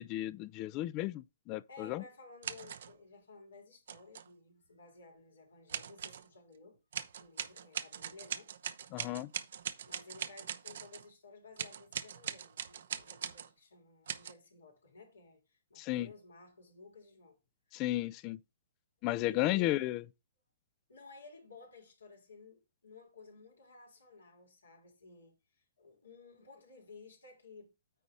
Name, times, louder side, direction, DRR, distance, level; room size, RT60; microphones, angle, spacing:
voice 1, 0.0-2.0 8.9-9.3 15.8-16.1 17.7-18.4 19.0-20.0, left 16 dB, 35° left, 0.5 m, -34 dB
voice 2, 1.7-6.8 7.2-8.5 9.8-17.4 17.7-17.8 19.2-19.9 20.9-25.3 25.8-27.7, left 4 dB, 85° left, 3.6 m, -55 dB
sound 1, 2.4-2.9 3.9-4.3 5.7-6.3 6.9-11.1 11.6-13.5 14.1-14.3, right 8 dB, 65° right, 0.8 m, -41 dB
9.2 x 4.1 x 5.0 m
hypercardioid pair, 130°, 0 cm